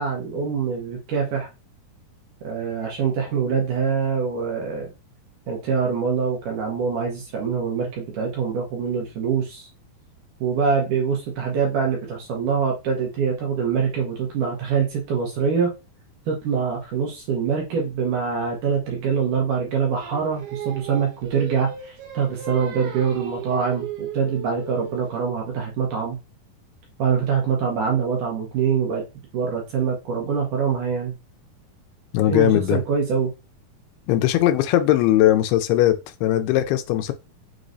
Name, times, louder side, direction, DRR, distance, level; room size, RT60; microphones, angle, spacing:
voice 1, 0.0-1.5 2.4-4.9 5.5-9.7 10.4-15.7 16.3-26.2 27.0-29.0 29.3-31.1 32.3-33.3, right 6 dB, 70° right, 2.2 m, -24 dB
Singing, 20.0-25.2, right 8 dB, 85° right, 2.8 m, -36 dB
voice 2, 32.1-32.8 34.1-37.1, left 13 dB, 85° left, 2.6 m, -19 dB
6.2 x 3.1 x 2.6 m
omnidirectional pair, 4.5 m